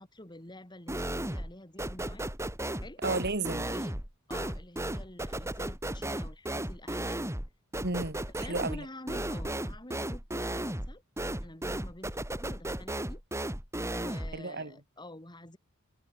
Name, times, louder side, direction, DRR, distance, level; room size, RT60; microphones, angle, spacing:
voice 1, 0.0-2.3 2.8-3.0 3.7-4.0 4.3-7.3 8.4-11.0 11.4-13.2 13.9-15.6, left 1 dB, 20° left, 3.6 m, -48 dB
sound 1, 0.9-1.5 1.8-14.4, right 1 dB, 15° right, 2.6 m, -35 dB
voice 2, 3.0-3.7 7.8-8.9 14.3-14.8, right 3 dB, 50° right, 3.2 m, -33 dB
head